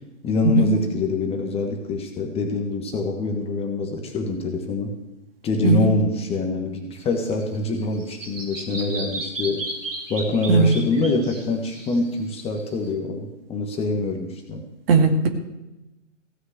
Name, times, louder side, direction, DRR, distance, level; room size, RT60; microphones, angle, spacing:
voice 1, 0.2-4.9 5.4-9.6 10.1-14.6, left 2 dB, 15° left, 3 dB, 1.4 m, -25 dB
voice 2, 5.6-6.0 10.5-10.7 14.9-15.3, right 3 dB, 50° right, 5 dB, 2.1 m, -17 dB
Bird vocalization bird call bird song, 7.0-12.9, right 2 dB, 75° right, 3.1 m, -35 dB
16.0 x 6.5 x 7.7 m, 1.0 s
figure-of-eight pair, 120°, 38 cm